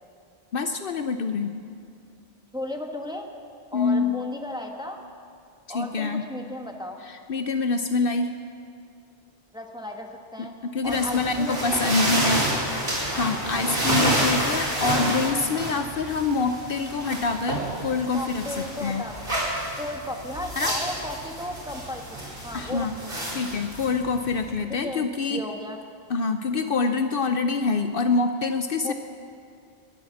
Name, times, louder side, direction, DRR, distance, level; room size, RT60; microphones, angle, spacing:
voice 1, 0.5-1.5 3.7-4.2 5.7-6.2 7.0-8.3 10.4-19.0 20.6-20.7 22.5-22.9 23.3-25.4 26.1-28.9, left 4 dB, 60° left, 7 dB, 0.8 m, -26 dB
voice 2, 2.5-3.3 3.7-5.0 5.7-7.0 9.5-10.5 10.8-12.0 13.5-13.7 18.1-19.2 19.8-23.3 24.7-25.8 28.8-28.9, left 1 dB, 5° right, 2 dB, 1.2 m, -35 dB
sound 1, 10.8-24.5, right 1 dB, 60° right, 4.3 m, -29 dB
21.5 x 8.4 x 7.2 m, 2.3 s
omnidirectional pair, 1.1 m